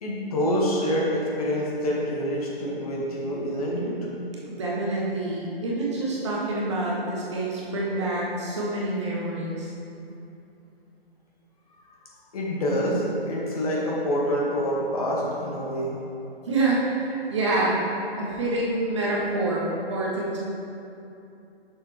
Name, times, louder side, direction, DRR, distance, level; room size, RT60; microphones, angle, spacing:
voice 1, 0.0-4.1 12.3-16.0, equal, 35° left, -4 dB, 1.4 m, -26 dB
voice 2, 4.5-9.7 16.4-20.4, right 2 dB, 30° right, -4 dB, 0.9 m, -27 dB
7.4 x 6.5 x 3.2 m, 2.7 s
hypercardioid pair, 160°, 31 cm